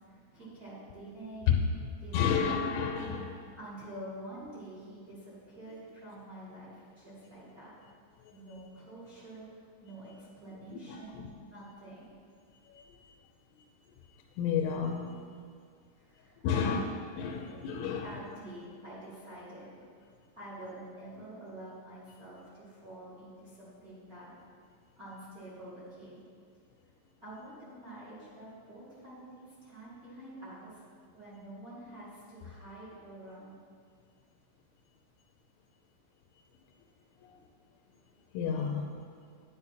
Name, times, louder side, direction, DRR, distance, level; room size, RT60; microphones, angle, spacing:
voice 1, 0.1-1.7 2.0-2.6 3.6-7.7 8.3-12.1 16.0-16.9 18.0-19.7 20.3-24.3 25.0-26.3 27.2-30.8 31.1-33.5, right 1 dB, 25° right, -9 dB, 2.1 m, -47 dB
voice 2, 2.1-3.4 10.9-11.3 12.7-13.1 14.4-15.2 16.4-16.8 17.2-18.1 37.3-37.4 38.3-39.0, left 6 dB, 85° left, 1 dB, 3.0 m, -32 dB
10.5 x 10.0 x 2.9 m, 2.1 s
omnidirectional pair, 5.4 m